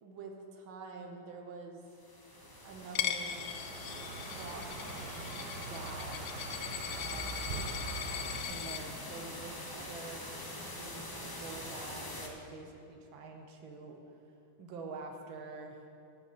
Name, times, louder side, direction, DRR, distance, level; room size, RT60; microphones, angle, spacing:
voice 1, 0.0-1.8 2.6-3.5 4.4-5.3 5.6-6.2 6.9-7.4 8.5-10.2 10.7-14.0 14.6-15.9, right 4 dB, 80° right, 3 dB, 1.8 m, -46 dB
sound 1, 1.9-12.3, left 1 dB, 35° left, 0.3 m, -44 dB
Car passing by, 2.4-8.4, right 4 dB, 60° right, 0.6 m, -44 dB
Coin (dropping), 2.9-8.8, left 10 dB, 80° left, 1.3 m, -39 dB
11.5 x 10.5 x 4.2 m, 2.7 s
omnidirectional pair, 2.1 m